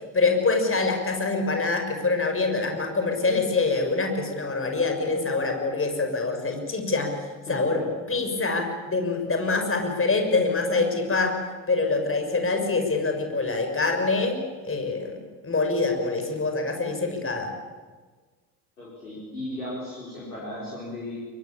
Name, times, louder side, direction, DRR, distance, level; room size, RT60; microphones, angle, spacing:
voice 1, 0.1-7.1 7.5-7.8 8.1-11.3 11.7-14.4 14.6-15.2 15.4-17.5, left 3 dB, 30° left, 4 dB, 6.5 m, -25 dB
voice 2, 7.5-7.8 18.8-21.2, left 1 dB, 85° left, -7 dB, 4.9 m, -36 dB
23.5 x 23.0 x 8.7 m, 1.4 s
figure-of-eight pair, 45°, 44 cm